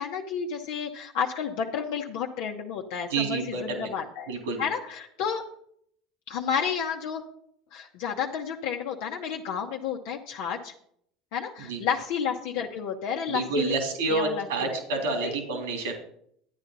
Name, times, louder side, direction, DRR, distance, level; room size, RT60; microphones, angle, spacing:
voice 1, 0.0-4.3 4.6-5.4 6.3-7.2 7.7-10.7 11.3-13.8 14.1-14.8 15.2-15.3, left 7 dB, 70° left, 0 dB, 1.0 m, -31 dB
voice 2, 3.1-3.9 4.3-4.6 11.6-11.8 13.3-15.9, right 3 dB, 85° right, 3 dB, 3.3 m, -28 dB
11.0 x 9.5 x 4.0 m, 0.67 s
hypercardioid pair, 90°, 0 cm